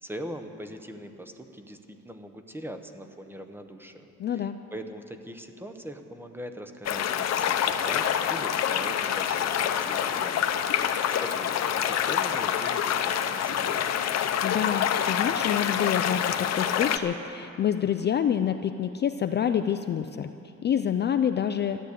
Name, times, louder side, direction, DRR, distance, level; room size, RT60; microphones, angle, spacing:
voice 1, 0.0-10.5 11.2-13.9, equal, 5° right, 6 dB, 0.7 m, -42 dB
voice 2, 4.2-4.6 14.4-20.3 20.6-21.8, left 9 dB, 35° left, 8 dB, 0.4 m, -27 dB
sound 1, 6.8-17.0, left 9 dB, 55° left, 0.8 m, -26 dB
13.0 x 12.0 x 8.2 m, 2.8 s
cardioid pair, 165°, 30 cm